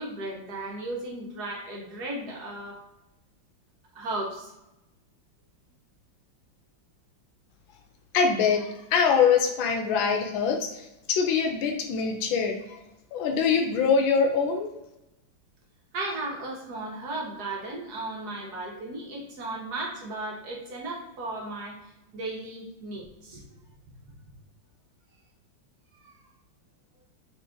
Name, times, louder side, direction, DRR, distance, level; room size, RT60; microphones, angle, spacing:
voice 1, 0.0-2.8 3.9-4.5 15.9-21.7 22.1-23.4 26.0-26.2, right 2 dB, 60° right, -2 dB, 1.3 m, -35 dB
voice 2, 8.1-12.8 13.1-14.7, left 6 dB, 75° left, 4 dB, 1.4 m, -24 dB
3.8 x 3.2 x 3.7 m, 0.92 s
omnidirectional pair, 2.2 m